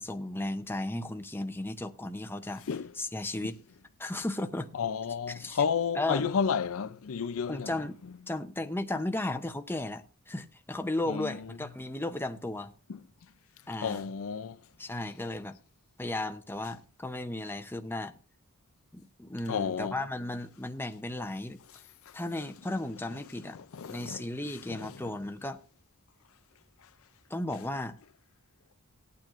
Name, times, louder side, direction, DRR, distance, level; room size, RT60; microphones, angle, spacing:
voice 1, 0.0-2.6 2.9-3.6 4.0-4.7 5.3-5.6 5.9-6.3 7.5-8.0 8.3-12.7 13.7-14.1 14.8-15.6 16.0-18.2 18.9-21.6 22.1-23.6 23.9-25.6 27.3-28.0, left 2 dB, 10° left, 0.7 m, -35 dB
voice 2, 4.8-7.7 11.1-11.3 13.8-14.6 19.5-19.9 23.7-24.2 24.7-24.9, left 6 dB, 65° left, 0.5 m, -31 dB
18.5 x 9.0 x 2.5 m
head